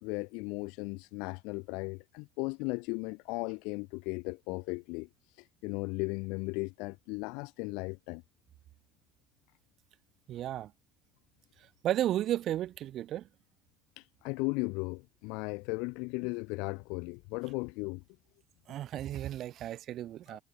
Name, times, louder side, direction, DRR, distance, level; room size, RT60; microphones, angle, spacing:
voice 1, 0.0-5.1 5.6-8.2 14.0-18.0 20.3-20.4, left 30 dB, 85° left, 1.3 m, -36 dB
voice 2, 10.3-10.7 11.8-13.3 18.7-20.4, right 12 dB, 45° right, 3.1 m, -33 dB
cardioid pair, 155°, 0 cm